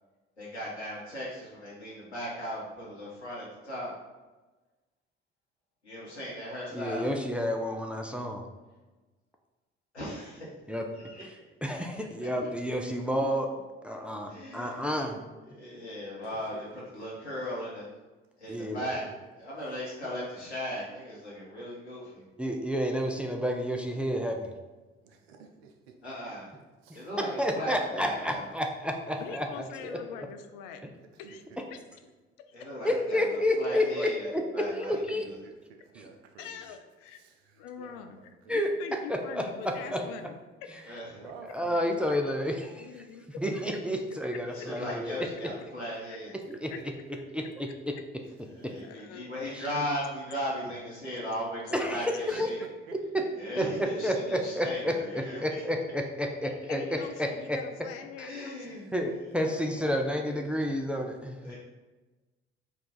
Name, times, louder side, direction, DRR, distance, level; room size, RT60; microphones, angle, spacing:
voice 1, 0.4-3.9 5.8-7.1 9.9-10.5 10.9-11.2 14.3-15.1 15.5-17.9 18.4-19.0 19.4-22.2 26.0-26.5 26.9-28.4 32.5-34.3 34.5-35.3 40.9-41.0 44.5-46.3 48.5-52.6 53.4-55.6 58.3-58.9 61.4-61.6, equal, 85° left, -7 dB, 1.1 m, -37 dB
voice 2, 6.7-8.5 10.7-10.9 11.6-13.5 13.8-15.2 18.5-18.9 22.4-24.5 27.4-30.2 32.8-34.4 34.7-35.2 35.9-36.1 38.5-38.7 39.1-40.0 41.4-42.9 43.4-45.5 46.5-46.7 47.3-47.9 48.6-48.7 49.5-49.6 51.7-52.5 52.9-53.3 53.6-57.6 58.2-58.3 58.9-61.5, equal, 5° right, 2 dB, 0.4 m, -30 dB
voice 3, 16.3-16.6 17.0-17.1 18.9-19.2 25.0-25.7 26.8-27.0 29.3-29.4 31.2-31.4 35.9-36.5 38.5-38.6 39.8-40.2 41.1-42.0 59.4-59.6 60.3-60.8 61.5-61.6, right 6 dB, 70° right, 4 dB, 0.6 m, -49 dB
voice 4, 29.2-30.8 31.2-31.4 31.7-31.8 32.5-32.7 36.4-37.2 37.6-40.8 41.2-41.3 42.7-43.2 44.3-44.7 46.1-46.2 48.8-49.9 56.7-58.9, left 7 dB, 60° left, 7 dB, 0.5 m, -44 dB
4.6 x 2.4 x 3.8 m, 1.2 s
figure-of-eight pair, 50°, 33 cm